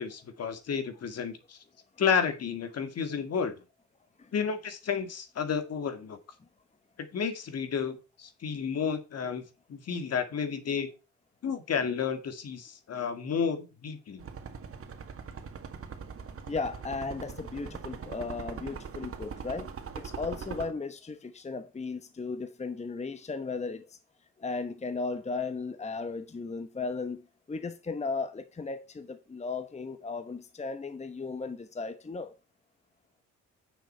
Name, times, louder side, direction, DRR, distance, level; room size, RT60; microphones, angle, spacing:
voice 1, 0.0-1.6 2.0-3.5 4.3-6.2 7.1-9.4 9.7-10.9 11.4-14.2, left 6 dB, 55° left, 2.1 m, -31 dB
sound 1, 14.2-20.7, right 6 dB, 50° right, 2.0 m, -41 dB
voice 2, 16.5-19.7 19.9-24.0 24.4-27.2 27.5-32.3, left 4 dB, 20° left, 1.1 m, -36 dB
9.2 x 6.8 x 4.4 m
cardioid pair, 90°, 30 cm